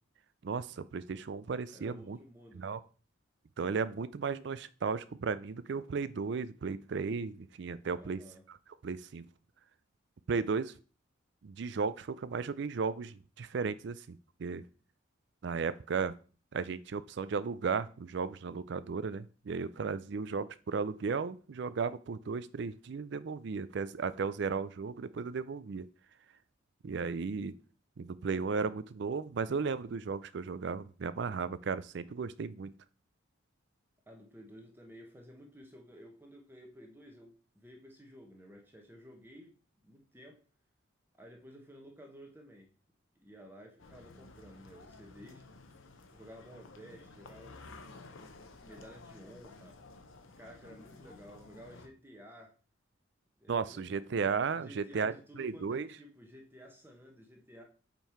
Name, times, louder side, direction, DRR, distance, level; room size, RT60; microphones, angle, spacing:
voice 1, 0.4-2.2 2.5-2.8 3.6-8.2 8.8-9.2 10.3-10.7 11.4-14.6 15.4-16.1 16.5-25.9 26.8-27.5 28.0-32.7 53.5-55.9, right 5 dB, 60° right, 16 dB, 0.4 m, -35 dB
voice 2, 1.7-2.8 8.0-8.4 34.1-39.6 39.8-40.4 41.1-42.7 43.2-45.5 46.1-47.6 48.6-49.8 50.4-52.5 53.4-53.9 54.5-57.6, equal, 10° right, 2 dB, 1.0 m, -53 dB
sound 1, 43.8-51.9, left 3 dB, 80° left, 0.9 m, -53 dB
5.3 x 4.5 x 4.5 m, 0.38 s
head